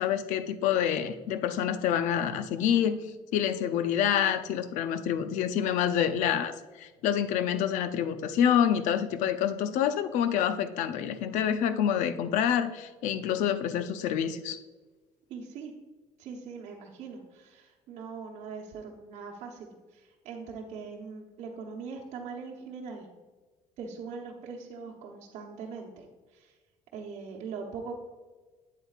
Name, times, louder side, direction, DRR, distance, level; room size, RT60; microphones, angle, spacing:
voice 1, 0.0-3.0 3.3-14.6, left 9 dB, 65° left, 11 dB, 0.5 m, -27 dB
voice 2, 15.3-15.7 16.2-23.1 23.8-26.0 26.3-26.5 26.9-28.0, right 5 dB, 55° right, -2 dB, 1.0 m, -41 dB
8.4 x 7.9 x 2.4 m, 1.3 s
cardioid pair, 160°, 13 cm